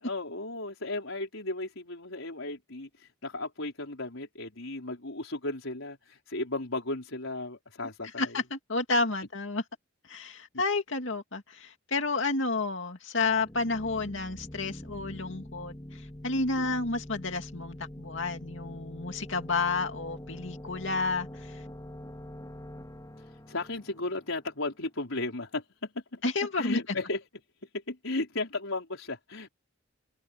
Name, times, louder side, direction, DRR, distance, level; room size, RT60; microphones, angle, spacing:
voice 1, 0.0-8.4 16.6-16.9 23.5-26.2 26.6-27.2 27.9-29.5, left 2 dB, 85° left, 4.7 m, -35 dB
voice 2, 8.2-9.6 10.1-21.6 26.2-26.8, left 3 dB, 65° left, 2.5 m, -31 dB
sound 1, 13.2-24.8, left 1 dB, 20° left, 3.1 m, -45 dB
head